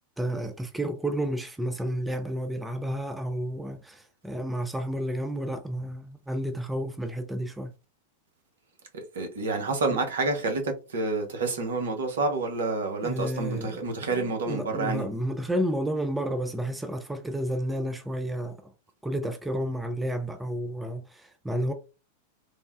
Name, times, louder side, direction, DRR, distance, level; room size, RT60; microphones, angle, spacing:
voice 1, 0.2-7.7 9.9-10.0 13.0-13.8 14.1-18.7 19.0-21.7, right 1 dB, 5° right, 0.3 m, -31 dB
voice 2, 8.9-15.1, right 3 dB, 65° right, 0.7 m, -29 dB
3.2 x 2.1 x 2.3 m
figure-of-eight pair, 90°, 0 cm